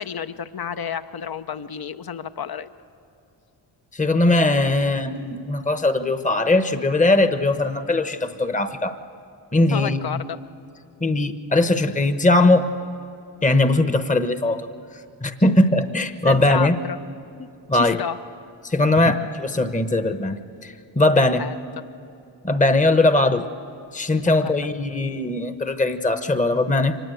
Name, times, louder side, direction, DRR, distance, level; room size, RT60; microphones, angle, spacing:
voice 1, 0.0-2.7 9.7-10.4 16.2-17.0 17.4-18.2 19.0-19.2 21.1-21.6 24.2-24.5, left 8 dB, 50° left, 12 dB, 0.9 m, -31 dB
voice 2, 3.9-9.0 9.5-10.2 11.0-12.7 13.4-14.7 15.2-16.8 17.7-18.0 18.6-19.2 19.6-21.4 22.4-23.5 23.9-27.0, left 2 dB, 15° left, 9 dB, 1.1 m, -20 dB
24.5 x 19.5 x 8.0 m, 2.7 s
cardioid pair, 65°, 47 cm